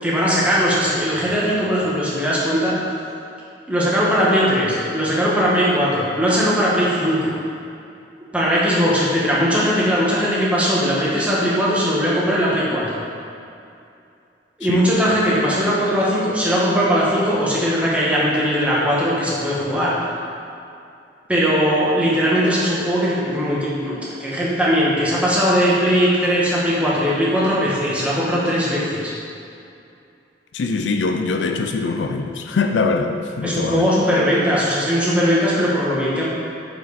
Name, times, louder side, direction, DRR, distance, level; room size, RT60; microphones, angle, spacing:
voice 1, 0.0-2.8 3.7-7.3 8.3-13.0 14.6-19.9 21.3-29.1 33.4-36.3, equal, 10° right, -7 dB, 1.5 m, -19 dB
voice 2, 30.5-33.9, left 3 dB, 85° left, 5 dB, 0.5 m, -23 dB
7.8 x 5.2 x 4.1 m, 2.6 s
head